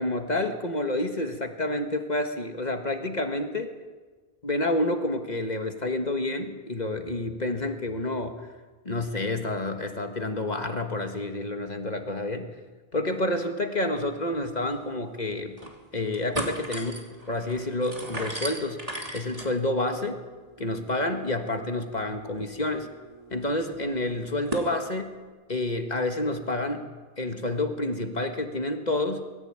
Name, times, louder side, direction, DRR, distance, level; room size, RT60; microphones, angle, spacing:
voice 1, 0.0-3.7 4.4-8.5 8.9-12.5 12.9-15.6 15.9-18.8 19.1-20.2 20.6-22.9 23.3-25.1 25.5-26.9 27.2-29.2, left 2 dB, 45° left, 6 dB, 1.7 m, -29 dB
sound 1, 14.3-14.4 14.7-14.8 15.3-15.8 16.1-24.7, right 1 dB, 35° right, 2.9 m, -39 dB
22.5 x 14.5 x 8.9 m, 1.3 s
omnidirectional pair, 1.0 m